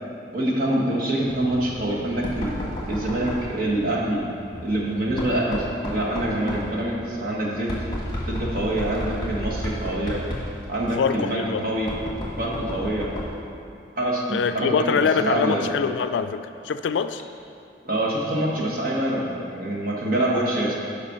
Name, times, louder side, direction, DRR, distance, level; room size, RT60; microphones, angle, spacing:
voice 1, 0.3-4.3 4.6-7.7 8.3-10.2 10.7-11.9 12.4-13.1 14.0-15.6 17.8-20.7, right 1 dB, 50° right, -4 dB, 1.3 m, -25 dB
Knock, 1.3-13.5, left 1 dB, 20° left, 1.4 m, -33 dB
voice 2, 11.0-11.6 14.3-17.2, left 6 dB, 80° left, 11 dB, 0.3 m, -24 dB
7.4 x 5.1 x 5.3 m, 2.6 s
head